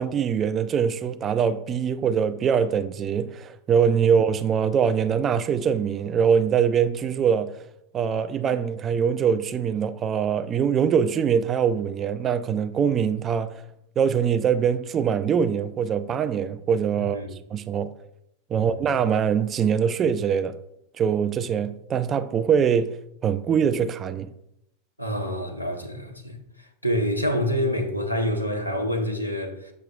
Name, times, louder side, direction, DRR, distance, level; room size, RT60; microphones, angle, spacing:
voice 1, 0.0-7.5 7.9-13.6 14.0-17.2 17.5-17.9 18.5-20.6 21.0-22.9 23.2-24.3, right 7 dB, 25° right, 0.4 m, -23 dB
voice 2, 25.0-26.4 26.8-29.7, equal, 90° left, 0.9 m, -27 dB
7.3 x 6.3 x 2.3 m
figure-of-eight pair, 90°, 0 cm